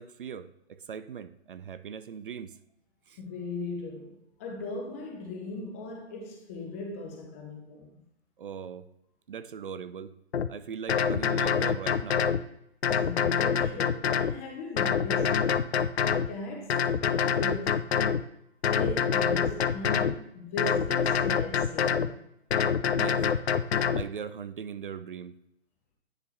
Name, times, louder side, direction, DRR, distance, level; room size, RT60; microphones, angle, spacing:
voice 1, 0.0-2.6 3.1-3.2 8.4-8.9 9.3-10.1 10.5-12.3 22.9-23.3 23.9-25.4, right 7 dB, 50° right, 0.5 m, -39 dB
voice 2, 3.2-8.0 13.0-15.6 16.3-16.8 17.3-17.9 18.6-22.3, left 2 dB, 15° left, 0.5 m, -38 dB
sound 1, 10.3-10.5 10.9-12.4 12.8-14.4 14.8-16.3 16.7-18.2 18.6-20.2 20.6-22.1 22.5-24.0, left 7 dB, 70° left, 0.5 m, -26 dB
10.0 x 3.6 x 4.1 m
figure-of-eight pair, 135°, 34 cm